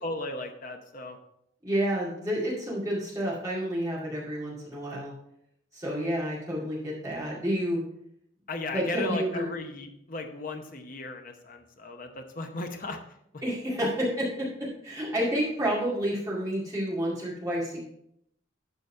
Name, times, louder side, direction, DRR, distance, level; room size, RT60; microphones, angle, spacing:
voice 1, 0.0-1.2 8.5-13.0 13.3-13.4, left 2 dB, 45° left, 5 dB, 0.8 m, -36 dB
voice 2, 1.6-5.1 5.7-7.8 8.7-9.5 13.4-17.8, equal, 15° right, -7 dB, 2.2 m, -30 dB
12.0 x 4.1 x 4.5 m, 0.75 s
head